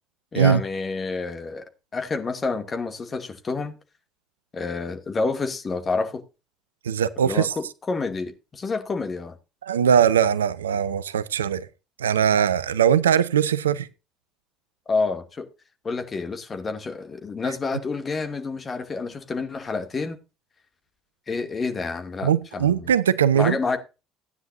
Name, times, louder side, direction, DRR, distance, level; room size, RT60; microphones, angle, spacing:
voice 1, 0.3-1.6 1.9-3.7 4.5-6.2 7.2-9.3 14.9-15.5 15.8-20.2 21.3-22.9 23.3-23.8, left 4 dB, 35° left, 2.3 m, -28 dB
voice 2, 6.8-7.5 9.6-11.7 12.0-13.9 22.2-23.6, right 8 dB, 80° right, 0.5 m, -20 dB
16.0 x 9.7 x 2.6 m
figure-of-eight pair, 55°, 0 cm